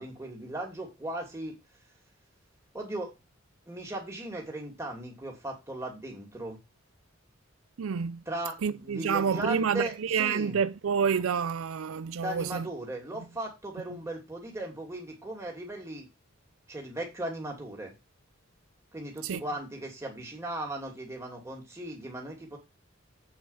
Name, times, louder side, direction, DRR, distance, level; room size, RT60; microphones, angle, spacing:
voice 1, 0.0-1.6 2.7-3.1 3.7-6.6 8.3-10.6 12.2-16.1 16.7-17.9 18.9-22.6, right 1 dB, 15° right, 2.8 m, -37 dB
voice 2, 7.8-8.2 8.6-12.7 13.9-14.0 19.2-19.4, right 6 dB, 80° right, 0.5 m, -28 dB
8.3 x 4.8 x 5.8 m
head